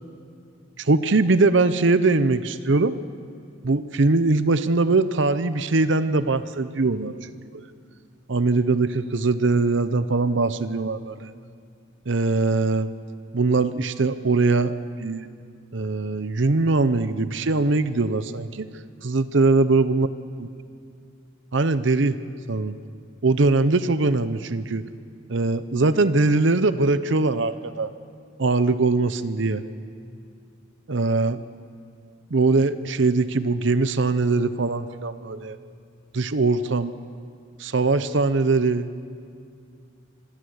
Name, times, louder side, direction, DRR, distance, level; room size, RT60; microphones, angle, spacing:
voice 1, 0.8-3.0 3.6-7.1 8.3-11.3 12.1-12.9 13.3-15.3 15.7-18.7 19.0-20.1 21.5-22.1 22.5-22.7 23.2-24.8 25.3-27.9 28.4-29.6 30.9-31.4 32.3-35.6 36.1-36.9 37.6-38.9, right 3 dB, 65° right, 13 dB, 0.7 m, -21 dB
25.5 x 16.5 x 8.0 m, 2.4 s
head